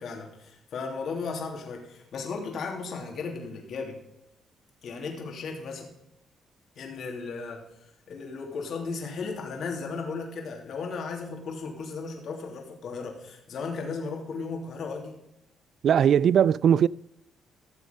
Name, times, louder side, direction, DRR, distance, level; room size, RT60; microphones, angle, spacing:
voice 1, 0.0-4.0 4.8-5.9 6.7-7.7 8.1-15.2, left 4 dB, 65° left, 3.0 m, -35 dB
voice 2, 15.8-16.9, right 8 dB, 65° right, 0.3 m, -19 dB
15.0 x 7.3 x 5.3 m
cardioid pair, 90°, 0 cm